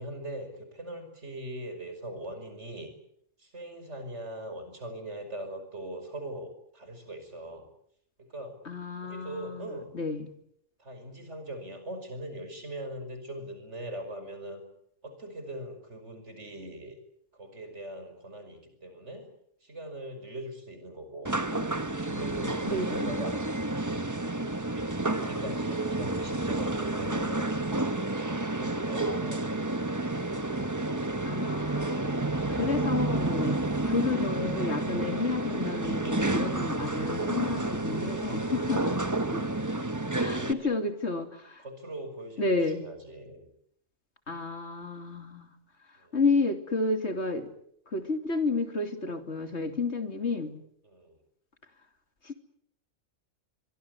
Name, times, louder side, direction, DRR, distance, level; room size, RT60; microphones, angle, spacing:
voice 1, 0.0-2.9 3.4-7.7 8.2-8.6 9.0-10.0 10.8-14.6 15.0-17.0 17.3-19.3 19.6-21.3 21.9-27.5 28.2-29.6 39.2-39.6 40.3-40.7 41.6-43.5 46.0-46.2 50.8-51.2, right 1 dB, 65° right, 8 dB, 5.8 m, -41 dB
voice 2, 8.6-10.3 22.7-23.1 31.2-32.0 32.5-33.6 33.8-39.0 39.3-39.4 40.1-41.6 42.4-42.8 44.3-45.5 45.9-47.5 47.9-50.5 52.2-52.3, left 3 dB, 60° left, 7 dB, 3.1 m, -31 dB
sound 1, 21.2-40.5, right 2 dB, 15° right, 1.2 m, -30 dB
24.5 x 23.0 x 8.2 m, 0.71 s
omnidirectional pair, 1.3 m